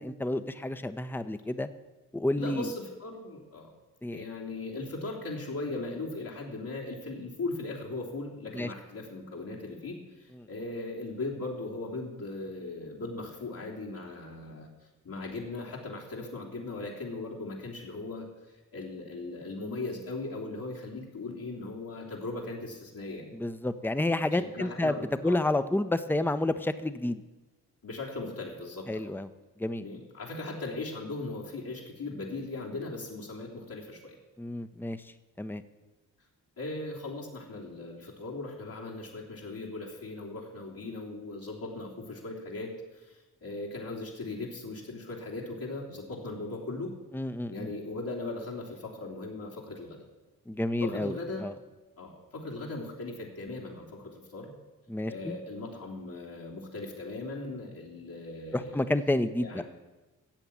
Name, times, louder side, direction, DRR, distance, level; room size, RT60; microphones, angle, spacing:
voice 1, 0.0-1.7 2.1-2.6 4.0-4.2 8.5-8.7 23.3-24.9 25.2-27.2 28.9-29.3 29.6-29.8 34.4-35.0 35.4-35.6 47.1-47.7 50.5-51.1 51.4-51.5 54.9-55.4 58.5-59.6, left 1 dB, 5° left, 11 dB, 0.9 m, -30 dB
voice 2, 2.4-3.7 4.1-14.7 15.0-23.3 24.3-25.4 27.8-29.1 29.8-34.1 36.6-46.9 47.5-50.0 50.8-51.5 52.0-54.5 55.1-58.8 59.4-59.7, left 2 dB, 70° left, -4 dB, 3.3 m, -38 dB
13.5 x 7.9 x 8.7 m, 1.1 s
supercardioid pair, 45°, 37 cm